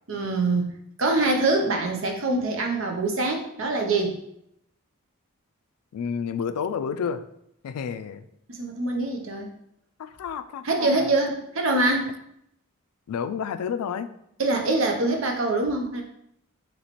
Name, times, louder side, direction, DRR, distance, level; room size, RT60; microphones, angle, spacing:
voice 1, 0.1-0.7 1.0-4.2 8.5-9.5 10.6-12.1 14.4-16.0, right 2 dB, 60° right, 2 dB, 0.7 m, -24 dB
voice 2, 5.9-7.2 7.6-8.3 10.0-11.1 13.1-14.1, left 7 dB, 90° left, 12 dB, 0.3 m, -30 dB
3.1 x 3.0 x 4.1 m, 0.74 s
head